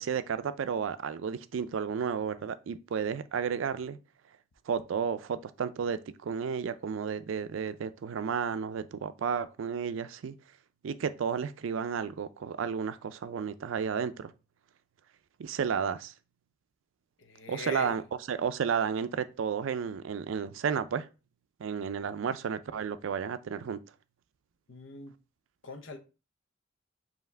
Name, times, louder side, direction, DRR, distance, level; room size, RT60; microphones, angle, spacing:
voice 1, 0.0-4.0 4.7-10.4 10.8-14.3 15.4-16.1 17.5-21.1 21.6-23.8, right 6 dB, 75° right, 0.4 m, -32 dB
voice 2, 17.2-18.0 24.7-25.1 25.6-26.0, left 4 dB, 65° left, 0.7 m, -41 dB
4.7 x 2.8 x 3.3 m
head